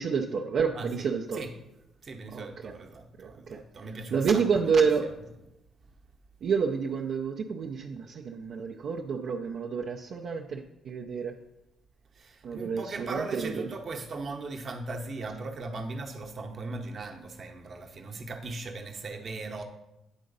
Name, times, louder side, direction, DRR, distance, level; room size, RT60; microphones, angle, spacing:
voice 1, 0.0-1.4 2.3-2.7 3.2-3.6 4.1-5.1 6.4-11.4 12.4-13.7, right 6 dB, 65° right, 0.5 m, -29 dB
voice 2, 0.7-1.5 2.0-5.1 12.1-19.6, right 3 dB, 45° right, 0.9 m, -39 dB
9.1 x 3.8 x 5.3 m
cardioid pair, 90°, 0 cm